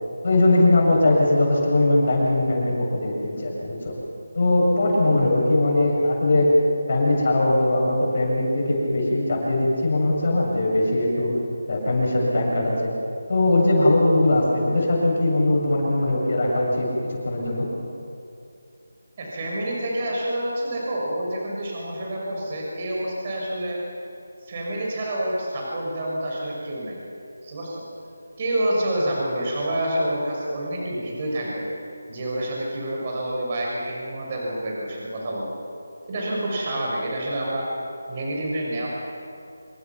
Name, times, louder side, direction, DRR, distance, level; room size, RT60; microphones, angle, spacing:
voice 1, 0.2-3.9 4.4-6.5 6.9-11.3 11.7-12.9 13.3-17.7, left 2 dB, 50° left, -2 dB, 7.4 m, -20 dB
voice 2, 19.2-23.8 24.4-27.0 27.4-27.8 28.4-31.7 32.1-35.5 36.1-37.7 38.1-38.9, right 1 dB, 35° right, -3 dB, 6.5 m, -28 dB
27.0 x 24.5 x 6.2 m, 2.6 s
figure-of-eight pair, 160°, 0 cm